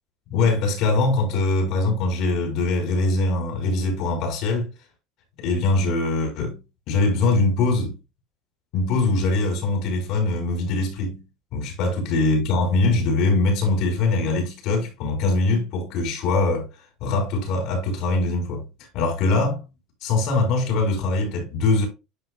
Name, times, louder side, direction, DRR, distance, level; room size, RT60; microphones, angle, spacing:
voice 1, 0.3-4.7 5.4-6.6 6.9-7.9 8.7-11.2 11.5-16.7 17.0-18.6 18.9-19.6 20.0-21.9, left 3 dB, 60° left, 4.1 m, -22 dB
11.0 x 4.8 x 2.3 m
cardioid pair, 145°, 0 cm